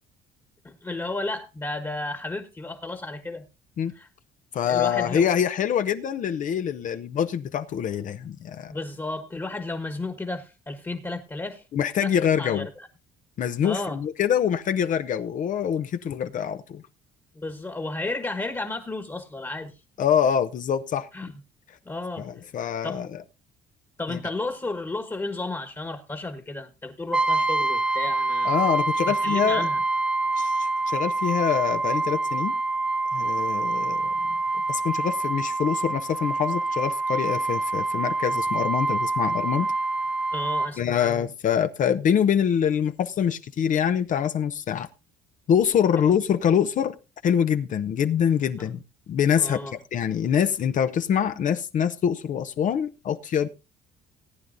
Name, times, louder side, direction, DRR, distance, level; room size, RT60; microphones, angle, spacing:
voice 1, 0.6-3.5 3.9-4.1 4.6-5.3 8.7-11.6 12.0-12.9 13.6-14.0 17.3-19.7 21.1-21.3 21.8-22.3 22.8-23.1 24.0-28.5 29.0-29.8 40.3-41.3 48.6-48.7 49.3-49.7, left 2 dB, 15° left, 1.3 m, -33 dB
voice 2, 4.5-8.7 11.7-12.7 13.4-16.8 20.0-21.1 22.2-23.1 24.1-24.2 28.4-29.7 30.4-32.5 33.1-34.0 34.7-39.7 40.8-44.9 45.5-47.0 47.2-48.8 49.1-49.6 49.9-53.5, left 8 dB, 50° left, 0.7 m, -25 dB
Brass instrument, 27.1-40.8, right 3 dB, 5° right, 1.0 m, -26 dB
18.5 x 9.4 x 2.6 m
cardioid pair, 110°, 17 cm